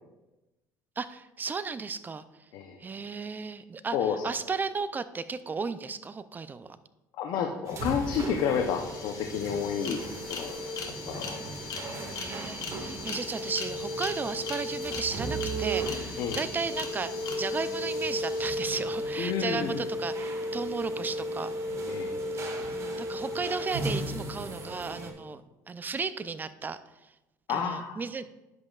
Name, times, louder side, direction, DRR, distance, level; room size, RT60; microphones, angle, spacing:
voice 1, 1.0-2.2 2.8-6.8 12.1-17.1 17.4-21.5 22.7-25.4 25.7-27.1 27.5-28.2, right 5 dB, 25° right, 13 dB, 0.5 m, -34 dB
voice 2, 7.2-10.6 10.9-11.4 16.2-16.4 19.2-19.8 21.9-22.1 27.5-28.0, left 7 dB, 70° left, 3 dB, 0.8 m, -30 dB
sound 1, 7.7-25.1, right 1 dB, 45° right, 1.8 m, -35 dB
sound 2, 8.4-19.2, left 5 dB, 55° left, 1.3 m, -41 dB
10.5 x 7.5 x 2.4 m, 0.99 s
supercardioid pair, 95°, 7 cm